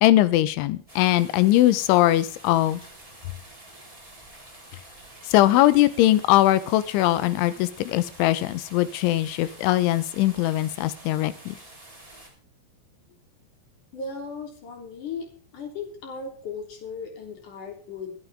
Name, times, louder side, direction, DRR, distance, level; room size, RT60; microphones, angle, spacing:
voice 1, 0.0-2.8 5.3-11.6, left 15 dB, 80° left, 14 dB, 3.0 m, -21 dB
sound 1, 0.9-12.3, right 1 dB, 5° right, 3.4 m, -48 dB
voice 2, 13.9-15.3 15.5-18.2, left 4 dB, 40° left, 2 dB, 4.1 m, -36 dB
24.0 x 9.0 x 3.5 m, 0.40 s
omnidirectional pair, 6.0 m